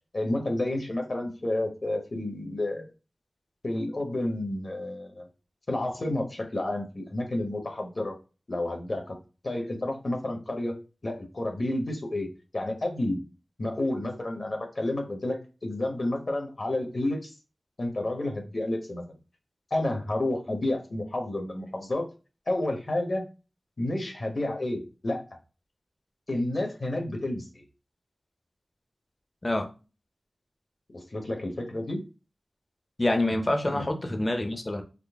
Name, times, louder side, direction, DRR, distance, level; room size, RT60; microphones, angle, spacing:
voice 1, 0.1-2.8 3.6-5.3 5.7-8.2 8.5-9.2 9.4-10.8 11.0-12.3 12.5-13.2 13.6-17.3 17.8-19.0 19.7-22.1 22.5-23.2 23.8-25.2 26.3-27.6 30.9-32.1 33.7-33.8, left 1 dB, 50° left, 1.0 m, -30 dB
voice 2, 33.0-34.8, left 1 dB, 25° left, 0.7 m, -26 dB
3.7 x 2.1 x 3.5 m
wide cardioid pair, 75°, 0 cm